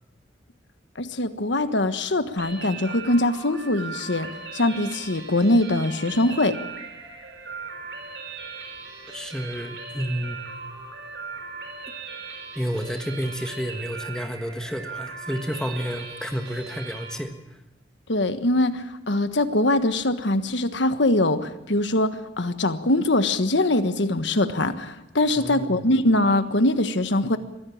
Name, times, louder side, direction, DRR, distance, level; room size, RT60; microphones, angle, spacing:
voice 1, 1.0-4.3 4.5-6.6 18.1-27.4, left 1 dB, 75° left, 10 dB, 1.4 m, -22 dB
sound 1, 2.4-17.2, right 4 dB, 75° right, 4.4 m, -38 dB
voice 2, 9.1-10.4 12.5-17.6 25.3-25.8, equal, 5° left, 5 dB, 1.4 m, -30 dB
22.5 x 15.5 x 8.6 m, 0.96 s
head